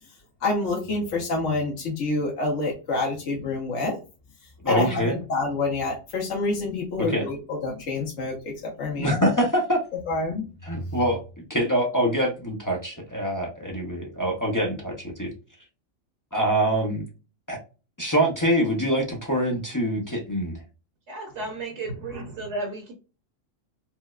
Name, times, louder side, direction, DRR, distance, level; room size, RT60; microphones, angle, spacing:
voice 1, 0.4-4.0 4.7-7.4 7.6-8.5 8.8-9.2 10.1-10.5, left 3 dB, 65° left, 1.1 m, -27 dB
voice 2, 4.6-5.1 7.0-7.3 9.0-9.8 10.6-11.2 11.5-15.3 16.3-17.1 17.5-17.6 18.0-20.6, equal, 30° left, 0.3 m, -24 dB
voice 3, 21.1-22.9, right 2 dB, 60° right, 1.1 m, -33 dB
4.5 x 2.1 x 2.3 m
omnidirectional pair, 1.4 m